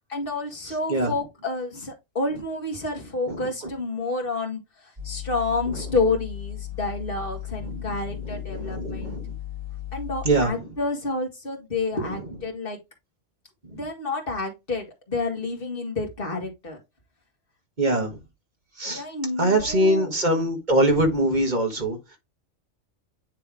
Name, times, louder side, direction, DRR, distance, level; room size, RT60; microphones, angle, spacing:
voice 1, 0.1-4.6 5.0-9.2 9.9-12.8 13.7-16.8 18.9-20.1, left 3 dB, 45° left, 2.0 m, -29 dB
sound 1, 5.0-10.5, left 13 dB, 20° right, 2.4 m, -36 dB
voice 2, 8.2-9.2 10.2-10.7 13.6-13.8 17.8-18.2 18.8-19.0 19.4-22.0, right 1 dB, 35° right, 1.7 m, -23 dB
9.4 x 3.4 x 3.4 m
omnidirectional pair, 1.3 m